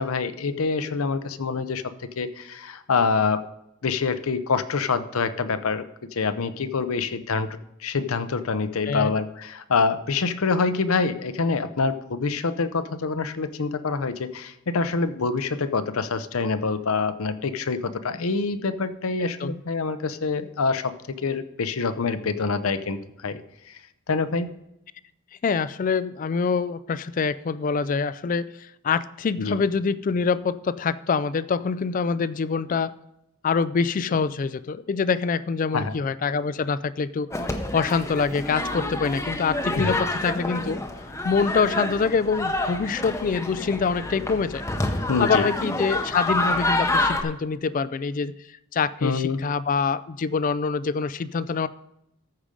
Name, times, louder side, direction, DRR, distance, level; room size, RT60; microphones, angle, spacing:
voice 1, 0.0-1.8 2.2-3.4 3.8-5.9 6.1-7.5 7.8-20.9 21.2-23.0 23.2-23.4 23.7-23.8 24.1-24.5 29.4-29.6 35.7-35.9 39.7-39.9 45.1-45.5 49.0-49.4, left 4 dB, 75° left, 11 dB, 0.7 m, -26 dB
voice 2, 25.4-32.9 33.4-37.3 37.7-40.8 41.2-44.6 45.2-51.7, left 5 dB, 40° left, 16 dB, 0.3 m, -25 dB
sound 1, 37.3-47.2, left 2 dB, 15° left, 0.7 m, -28 dB
14.0 x 5.1 x 5.1 m, 0.84 s
head